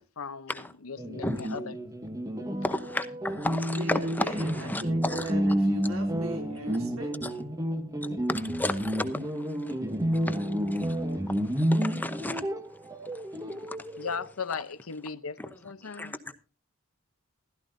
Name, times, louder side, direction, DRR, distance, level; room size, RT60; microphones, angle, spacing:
voice 1, 0.2-1.8 14.0-16.2, left 5 dB, 80° left, 0.8 m, -37 dB
sound 1, 1.0-14.3, equal, 15° right, 1.1 m, -30 dB
voice 2, 1.2-1.6 2.6-5.3 7.2-7.3 8.0-9.7 10.1-11.0 11.3-12.4 13.7-13.8 15.8-16.3, left 1 dB, 10° left, 0.8 m, -34 dB
voice 3, 3.8-7.4, right 1 dB, 70° right, 3.4 m, -40 dB
16.0 x 13.0 x 2.7 m
head